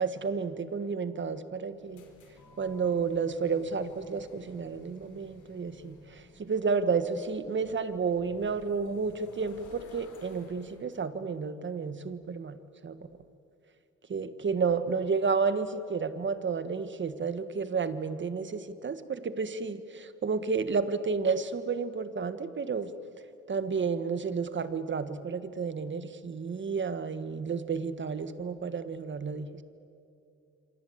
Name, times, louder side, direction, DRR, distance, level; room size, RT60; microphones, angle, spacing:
voice 1, 0.0-2.0 2.6-12.6 12.8-13.0 14.1-22.9 23.5-29.5, right 5 dB, 40° right, 12 dB, 1.6 m, -31 dB
sound 1, 1.7-11.0, left 4 dB, 80° left, 4.3 m, -54 dB
27.5 x 25.0 x 8.1 m, 2.6 s
cardioid pair, 90°, 30 cm